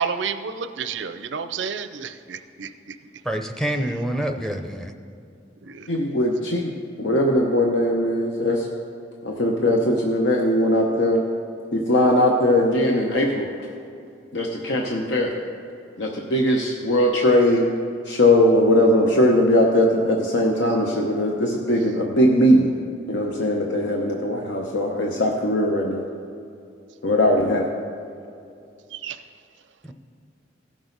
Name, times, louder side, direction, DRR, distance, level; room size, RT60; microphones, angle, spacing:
voice 1, 0.0-3.0 5.6-5.9 6.4-6.5 28.9-29.2, right 6 dB, 90° right, 10 dB, 0.5 m, -30 dB
voice 2, 3.2-4.9 29.8-29.9, right 1 dB, 5° left, 4 dB, 0.5 m, -27 dB
voice 3, 5.9-6.7 7.0-8.7 9.2-11.2 11.7-13.5 14.3-15.3 16.0-17.7 18.1-22.8 23.1-26.0 27.0-27.7, left 1 dB, 85° left, 1 dB, 0.8 m, -20 dB
16.0 x 6.2 x 3.9 m, 2.6 s
head